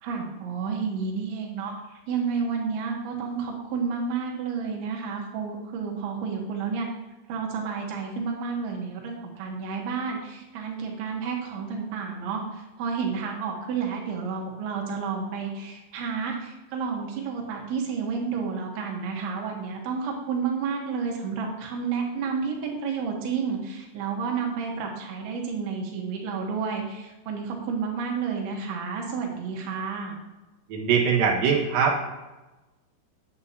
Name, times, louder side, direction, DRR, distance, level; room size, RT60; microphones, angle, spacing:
voice 1, 0.0-6.9 7.3-30.2, right 5 dB, 85° right, 0 dB, 3.6 m, -31 dB
voice 2, 30.7-32.1, right 6 dB, 60° right, -3 dB, 2.9 m, -22 dB
9.7 x 8.2 x 2.8 m, 1.1 s
omnidirectional pair, 5.2 m